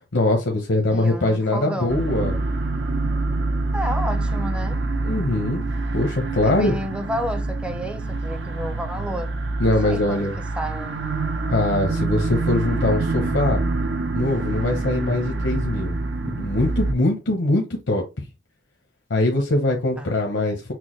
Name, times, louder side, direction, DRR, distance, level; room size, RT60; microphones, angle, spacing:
voice 1, 0.1-2.4 5.0-5.6 5.9-6.8 9.6-10.3 11.5-13.6 14.1-16.0 16.2-18.3 19.1-20.7, left 2 dB, 80° left, 0.8 m, -22 dB
voice 2, 0.9-2.0 3.7-4.8 6.4-9.3 9.6-11.3 20.0-20.2, equal, 5° right, 0.5 m, -31 dB
sound 1, 1.9-16.9, right 3 dB, 80° right, 0.7 m, -26 dB
6.0 x 2.2 x 3.1 m
head